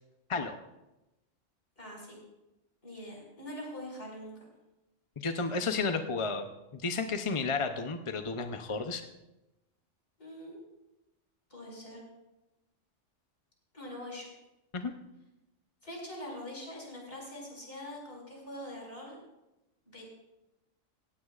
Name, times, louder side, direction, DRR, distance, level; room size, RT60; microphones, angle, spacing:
voice 1, 1.8-2.2 2.8-4.4 10.2-10.6 11.5-12.0 13.7-14.3 15.8-19.2 19.9-20.0, left 1 dB, 50° left, -2 dB, 5.5 m, -43 dB
voice 2, 5.2-9.1 14.7-14.9, left 4 dB, 35° left, 6 dB, 0.6 m, -32 dB
17.5 x 16.0 x 2.4 m, 0.97 s
omnidirectional pair, 1.3 m